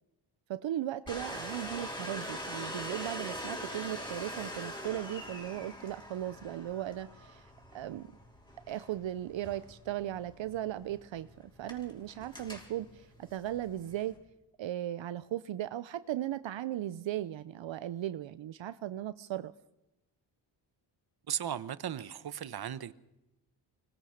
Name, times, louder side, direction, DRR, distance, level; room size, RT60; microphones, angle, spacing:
voice 1, 0.5-8.1 8.7-14.1 14.6-19.5, right 12 dB, 80° right, 14 dB, 0.8 m, -37 dB
Domestic sounds home sounds, 1.1-14.2, equal, 10° left, 5.4 m, -43 dB
voice 2, 21.3-22.9, right 9 dB, 55° right, 15 dB, 1.1 m, -36 dB
24.5 x 20.0 x 6.5 m, 0.93 s
cardioid pair, 95°, 44 cm